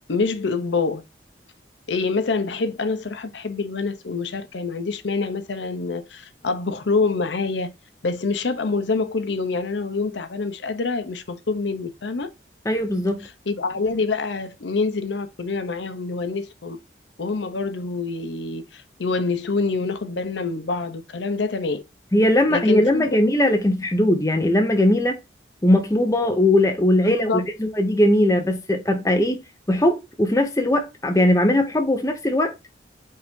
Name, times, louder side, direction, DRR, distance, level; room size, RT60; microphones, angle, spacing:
voice 1, 0.1-1.0 1.9-7.7 8.0-12.3 13.2-16.8 17.2-21.8 22.5-23.2 27.0-27.5, left 4 dB, 80° left, 0.7 m, -26 dB
voice 2, 12.6-13.3 22.1-25.2 25.6-29.4 29.7-32.5, left 1 dB, 15° left, 0.8 m, -19 dB
5.4 x 2.7 x 3.5 m
head